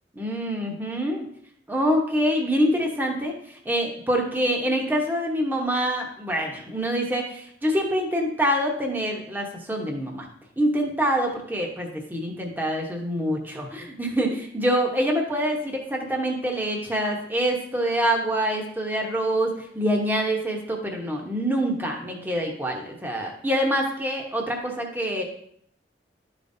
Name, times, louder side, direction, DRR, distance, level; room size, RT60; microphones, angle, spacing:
voice 1, 0.1-1.3 1.7-10.3 10.6-25.2, equal, 10° right, 1 dB, 1.0 m, -25 dB
12.5 x 5.1 x 2.7 m, 0.68 s
head